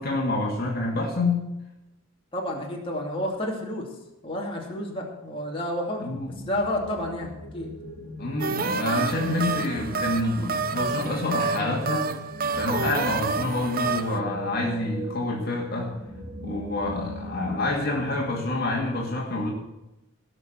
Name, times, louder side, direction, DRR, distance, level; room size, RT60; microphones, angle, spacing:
voice 1, 0.0-1.5 6.0-6.3 8.2-12.1 12.5-16.0 16.4-19.5, left 2 dB, 45° left, -1 dB, 2.3 m, -27 dB
voice 2, 2.3-3.9 4.2-6.1 6.4-7.7 12.9-13.0, left 1 dB, 25° left, -2 dB, 2.6 m, -30 dB
sound 1, 6.2-18.9, left 1 dB, 20° right, 4.2 m, -40 dB
sound 2, 8.4-14.2, right 5 dB, 45° right, 0.7 m, -29 dB
17.5 x 6.2 x 7.3 m, 0.95 s
head